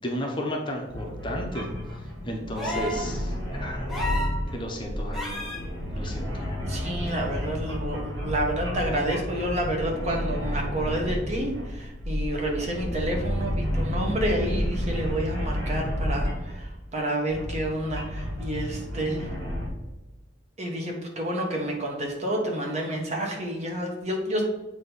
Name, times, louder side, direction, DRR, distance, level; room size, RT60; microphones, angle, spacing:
voice 1, 0.0-1.7 2.2-3.8 4.5-5.4 5.9-6.5, equal, 25° left, 1 dB, 0.9 m, -33 dB
sound 1, 0.9-16.7 17.2-19.7, equal, 70° right, 2.3 m, -31 dB
sound 2, 2.6-3.1 3.9-4.4 5.1-5.6 7.1-7.2, left 1 dB, ahead, 1.1 m, -31 dB
voice 2, 6.6-19.3 20.6-24.4, right 1 dB, 35° right, 0 dB, 1.3 m, -29 dB
7.6 x 3.0 x 5.5 m, 0.99 s
head